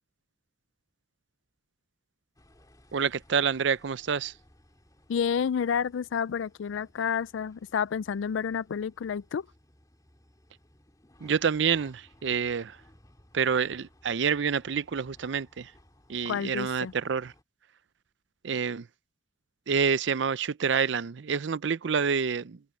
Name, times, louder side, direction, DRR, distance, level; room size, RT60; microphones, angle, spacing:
sound 1, 2.4-17.4, left 1 dB, 20° left, 3.0 m, -60 dB
voice 1, 2.9-4.3 11.2-12.8 13.3-15.7 16.1-17.3 18.4-18.9 19.7-22.6, right 6 dB, 70° right, 0.5 m, -28 dB
voice 2, 5.1-9.5 16.2-16.9, left 7 dB, 85° left, 0.4 m, -30 dB
head